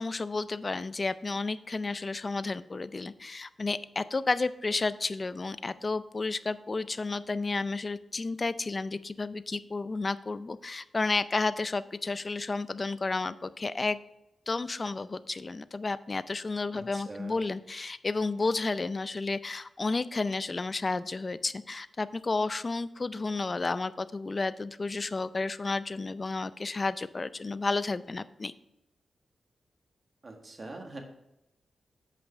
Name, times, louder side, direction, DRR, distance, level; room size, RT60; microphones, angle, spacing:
voice 1, 0.0-14.0 14.5-28.5, left 3 dB, 35° left, 15 dB, 0.4 m, -32 dB
voice 2, 16.7-17.4 30.2-31.0, right 2 dB, 40° right, 2 dB, 1.7 m, -43 dB
8.5 x 5.4 x 5.6 m, 0.89 s
cardioid pair, 75°, 0 cm